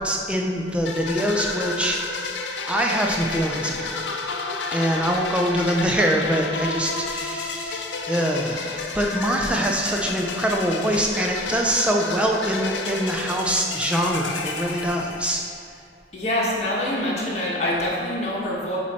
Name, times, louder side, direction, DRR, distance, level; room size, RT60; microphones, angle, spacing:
voice 1, 0.0-2.3 2.7-4.0 4.7-15.4, equal, 5° right, 0 dB, 0.5 m, -24 dB
sound 1, 0.8-15.6, left 3 dB, 85° left, 0.6 m, -31 dB
voice 2, 16.1-18.8, left 1 dB, 40° left, -6 dB, 1.2 m, -25 dB
8.2 x 3.1 x 4.2 m, 2.3 s
head